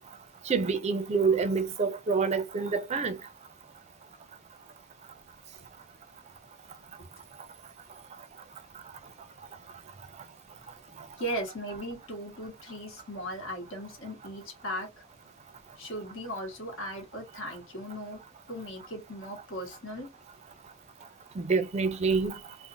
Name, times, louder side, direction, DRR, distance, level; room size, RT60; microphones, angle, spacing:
voice 1, 0.5-3.2 21.4-22.4, right 4 dB, 35° right, 0.4 m, -27 dB
voice 2, 11.2-14.9 15.8-18.2 18.5-20.1, equal, 75° left, 1.2 m, -37 dB
2.5 x 2.1 x 2.8 m
head